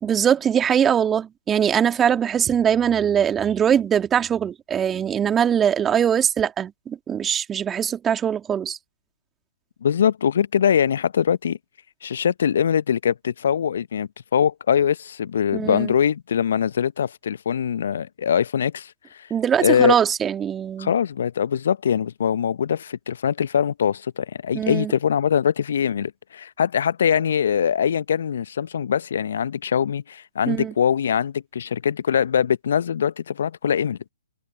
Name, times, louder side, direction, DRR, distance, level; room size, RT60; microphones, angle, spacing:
voice 1, 0.0-8.8 15.5-15.9 19.3-20.9 24.5-24.9 30.5-30.7, right 8 dB, 15° right, 2.5 m, -21 dB
voice 2, 9.8-11.6 12.0-18.9 19.2-19.3 19.6-20.0 20.8-34.0, left 8 dB, 55° left, 1.1 m, -22 dB
figure-of-eight pair, 130°, 0 cm